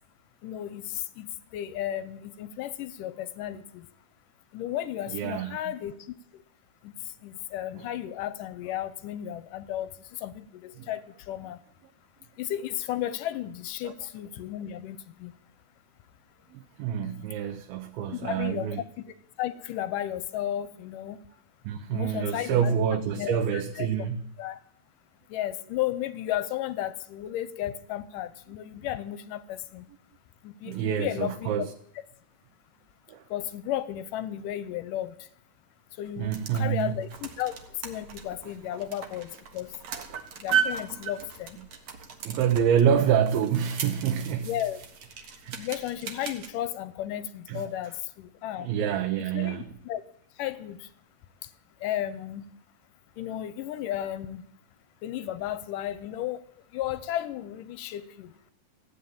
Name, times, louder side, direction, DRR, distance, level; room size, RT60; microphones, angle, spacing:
voice 1, 0.4-1.3 1.5-3.9 4.5-6.1 6.8-6.9 7.2-11.0 11.3-11.6 12.4-15.3 18.1-19.0 19.4-21.2 21.9-22.8 23.1-23.9 24.4-24.6 25.3-29.9 30.4-31.7 33.3-35.2 36.0-37.6 37.8-39.7 40.4-41.6 44.4-44.8 45.6-48.7 49.3-50.0 50.4-50.9 51.8-52.4 53.2-54.4 55.0-56.4 56.7-58.3, left 12 dB, 75° left, 2.1 m, -34 dB
voice 2, 5.1-5.6 7.8-7.9 10.8-10.9 13.8-13.9 16.5-18.8 21.6-24.2 30.7-31.7 33.1-33.2 36.2-36.9 38.7-38.8 39.9-40.2 42.2-44.5 45.4-45.7 47.5-47.6 48.6-49.7, right 8 dB, 80° right, 2.7 m, -27 dB
sound 1, 36.0-46.5, right 8 dB, 55° right, 2.3 m, -36 dB
16.0 x 9.5 x 8.8 m
omnidirectional pair, 4.4 m